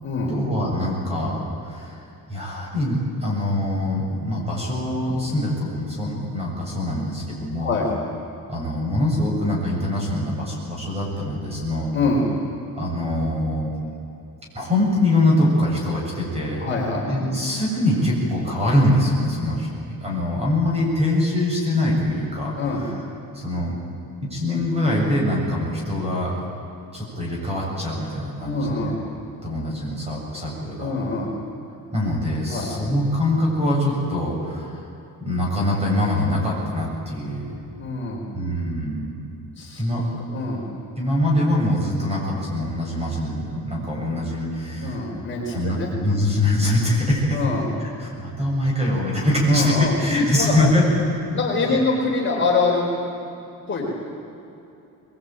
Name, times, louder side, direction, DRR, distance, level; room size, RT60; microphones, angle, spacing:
voice 1, 0.3-7.7 8.5-11.9 12.7-13.7 14.5-16.7 17.1-23.0 23.3-23.8 24.2-26.3 26.9-28.9 29.4-30.9 31.9-34.9 35.2-37.6 38.3-39.1 39.8-40.0 41.0-45.0 45.5-47.4 47.8-51.0 51.6-51.8, left 1 dB, 15° right, -3 dB, 7.7 m, -23 dB
voice 2, 11.9-12.3 16.6-17.0 22.6-22.9 28.4-29.0 30.8-31.3 32.5-32.7 37.8-38.2 39.6-39.8 40.3-40.6 44.8-45.9 47.3-47.7 49.5-49.9 50.3-50.6 51.3-52.9 53.7-53.9, left 3 dB, 35° left, -3 dB, 4.6 m, -24 dB
24.5 x 22.0 x 9.2 m, 2.8 s
cardioid pair, 165°, 36 cm